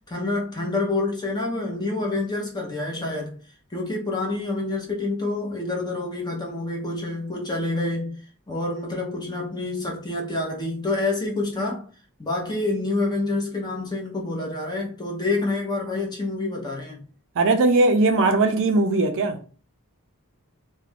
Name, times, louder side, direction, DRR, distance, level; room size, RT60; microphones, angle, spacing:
voice 1, 0.1-3.3 3.7-8.2 8.5-11.8 12.2-17.0, left 2 dB, 20° left, 0.7 m, -27 dB
voice 2, 17.4-19.4, right 2 dB, 60° right, 0.4 m, -19 dB
2.4 x 2.1 x 3.3 m
head